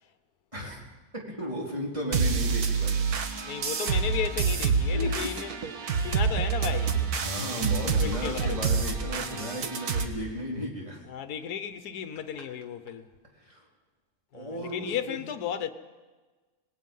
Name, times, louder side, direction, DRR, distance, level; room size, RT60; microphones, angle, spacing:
voice 1, 1.1-3.1 4.0-4.1 4.9-5.3 6.0-6.1 7.2-11.0 13.4-13.6 14.3-15.2, equal, 20° right, 3.9 m, -35 dB
sound 1, 2.1-10.1, right 5 dB, 75° right, 1.8 m, -27 dB
voice 2, 3.4-5.5 6.0-7.1 7.8-8.7 11.1-13.1 14.3-15.7, left 8 dB, 75° left, 1.4 m, -34 dB
26.0 x 19.5 x 5.5 m
omnidirectional pair, 1.6 m